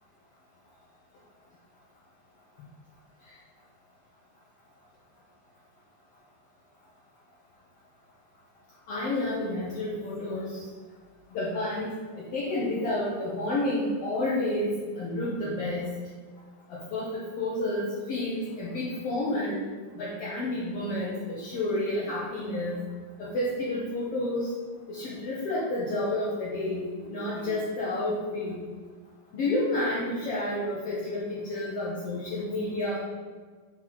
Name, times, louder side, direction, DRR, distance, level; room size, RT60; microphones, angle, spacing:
voice 1, 8.9-10.6 11.3-15.9 16.7-19.6 19.9-22.8 23.2-24.5 24.9-28.6 29.3-33.0, left 1 dB, 70° left, -7 dB, 1.4 m, -30 dB
5.6 x 4.7 x 5.8 m, 1.5 s
omnidirectional pair, 4.1 m